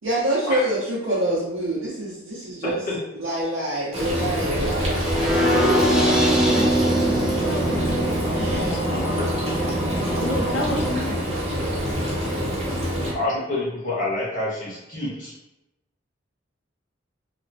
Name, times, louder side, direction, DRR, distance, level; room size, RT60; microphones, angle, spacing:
voice 1, 0.0-2.8 3.1-5.1 5.7-5.9, right 1 dB, 75° right, -7 dB, 0.6 m, -26 dB
Frying (food), 3.9-13.1, equal, 35° right, 0.7 m, -26 dB
sound 1, 4.9-10.9, right 1 dB, ahead, 0.4 m, -23 dB
voice 2, 5.3-8.0 8.3-9.3 10.2-11.3, left 1 dB, 70° left, 2 dB, 0.5 m, -30 dB
voice 3, 13.1-15.3, left 2 dB, 45° left, -7 dB, 1.2 m, -27 dB
2.9 x 2.0 x 2.6 m, 0.93 s
head